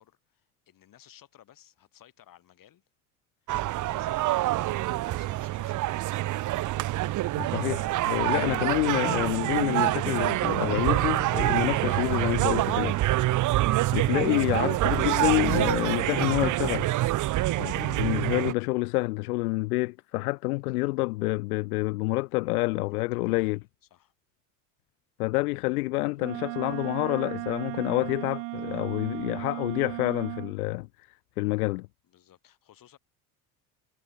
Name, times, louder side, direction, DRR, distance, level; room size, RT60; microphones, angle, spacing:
voice 1, 0.0-2.8 3.4-6.2 12.9-13.1 17.3-17.4 20.8-20.9 22.8-23.6 23.9-24.1 28.7-28.8 32.0-33.0, left 11 dB, 45° left, 7.4 m, -58 dB
sound 1, 3.5-18.5, right 16 dB, 45° right, 0.8 m, -26 dB
voice 2, 7.4-12.9 13.9-16.9 17.6-23.6 25.2-31.9, left 23 dB, 75° left, 0.7 m, -28 dB
Wind instrument woodwind instrument, 26.2-30.6, right 40 dB or more, 65° right, 2.0 m, -36 dB
hypercardioid pair, 75°, 45 cm